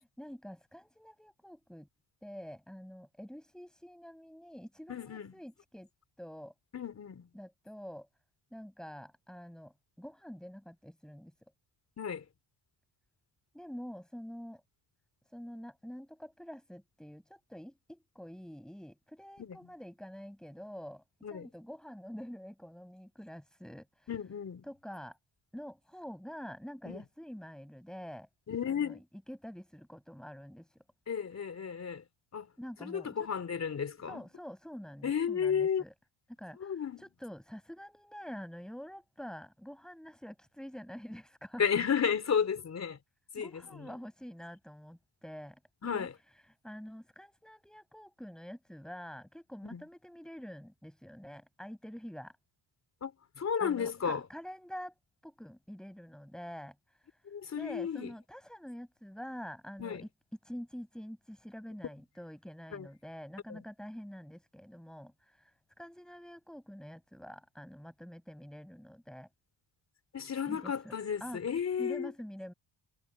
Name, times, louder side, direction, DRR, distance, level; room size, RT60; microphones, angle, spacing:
voice 1, 0.2-1.9 2.2-5.9 6.2-6.5 7.3-8.1 8.5-11.3 13.5-14.6 15.2-24.1 24.7-25.2 25.5-28.3 28.7-29.0 29.3-30.8 32.6-33.3 34.1-35.9 36.4-41.6 43.4-46.1 46.4-52.4 53.6-60.1 60.4-69.3 70.4-70.9 71.2-71.4 71.8-72.5, equal, ahead, 7.7 m, -47 dB
voice 2, 4.9-5.3 6.7-7.3 12.0-12.3 19.4-19.6 21.2-21.5 24.1-24.6 26.9-27.0 28.5-29.0 31.1-32.0 32.3-32.5 32.8-34.3 35.0-35.8 36.6-37.0 41.6-43.0 43.3-43.9 45.8-46.1 49.7-49.8 53.0-54.2 57.3-58.1 59.8-60.1 62.7-62.9 63.5-63.6 70.1-72.1, left 7 dB, 35° left, 4.2 m, -33 dB
cardioid pair, 160°, 46 cm